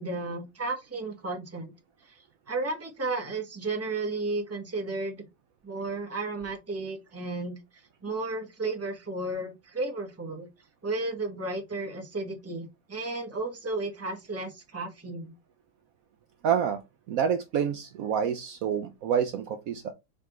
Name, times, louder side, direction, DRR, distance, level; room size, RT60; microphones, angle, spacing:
voice 1, 0.0-1.7 2.0-5.2 5.6-10.5 10.8-15.3, right 2 dB, 10° right, 0.7 m, -33 dB
voice 2, 16.4-16.8 17.1-19.9, right 8 dB, 90° right, 0.7 m, -27 dB
5.1 x 3.3 x 3.0 m
omnidirectional pair, 2.0 m